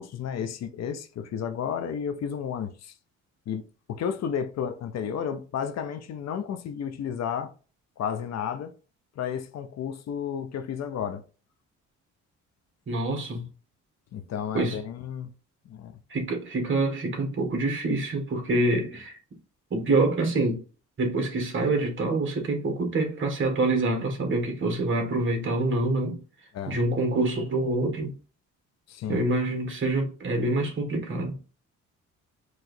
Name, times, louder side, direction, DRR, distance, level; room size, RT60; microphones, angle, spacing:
voice 1, 0.0-2.9 3.5-3.6 3.9-7.5 8.0-8.8 9.2-11.2 14.1-15.3 15.7-15.9 26.5-26.8 28.9-29.2, left 8 dB, 60° left, 0.6 m, -32 dB
voice 2, 12.9-13.4 14.5-14.8 16.1-19.2 19.7-20.6 21.0-26.2 26.7-28.1 29.1-31.4, right 2 dB, 40° right, 1.7 m, -26 dB
4.7 x 3.1 x 2.6 m
cardioid pair, 90°, 30 cm